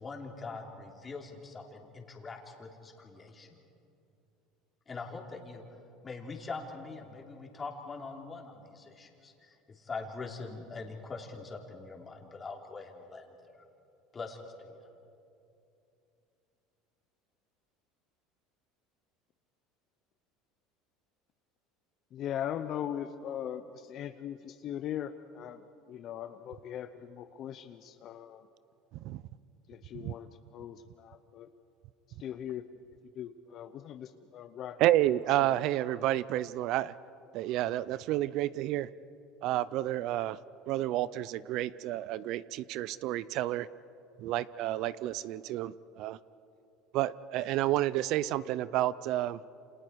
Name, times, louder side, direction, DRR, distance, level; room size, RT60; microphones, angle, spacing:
voice 1, 0.0-3.6 4.9-5.6 6.0-13.6 14.1-14.8, left 4 dB, 25° left, 1 dB, 3.1 m, -43 dB
voice 2, 22.1-28.4 29.7-31.5 32.2-32.7 33.1-34.8, left 10 dB, 50° left, 9 dB, 0.7 m, -40 dB
voice 3, 34.8-36.9 37.3-38.9 39.4-40.4 40.7-43.7 44.2-46.2 46.9-49.4, right 14 dB, 60° right, 18 dB, 0.5 m, -30 dB
28.5 x 27.0 x 4.7 m, 2.7 s
supercardioid pair, 115°, 0 cm